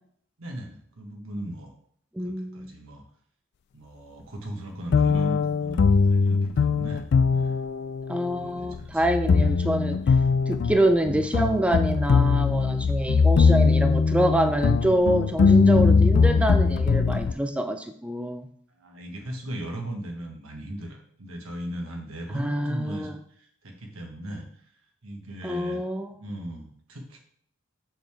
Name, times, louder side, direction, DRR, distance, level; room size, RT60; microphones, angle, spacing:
voice 1, 0.4-1.7 2.2-3.0 3.7-7.0 7.3-7.6 8.2-9.0 10.2-10.5 15.7-15.8 18.7-24.6 25.0-25.8 26.1-27.2, right 1 dB, 90° right, 2 dB, 1.5 m, -38 dB
voice 2, 2.1-2.7 8.1-10.0 10.5-18.5 22.3-23.2 25.4-26.1, right 1 dB, 5° right, 6 dB, 0.4 m, -26 dB
sound 1, 4.9-17.3, left 5 dB, 55° left, 0.4 m, -21 dB
6.7 x 6.3 x 3.4 m, 0.63 s
head